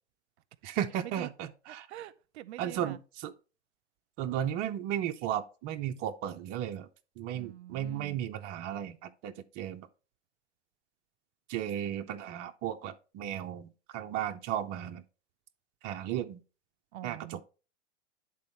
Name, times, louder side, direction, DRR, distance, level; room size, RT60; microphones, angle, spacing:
voice 1, 0.6-1.9 2.6-3.3 4.2-6.9 7.2-9.9 11.5-15.0 15.8-16.4 17.0-17.4, right 10 dB, 25° right, 0.4 m, -35 dB
voice 2, 1.7-3.0 7.3-8.2 16.9-17.4, right 14 dB, 65° right, 0.7 m, -45 dB
9.7 x 3.9 x 4.3 m
hypercardioid pair, 125°, 36 cm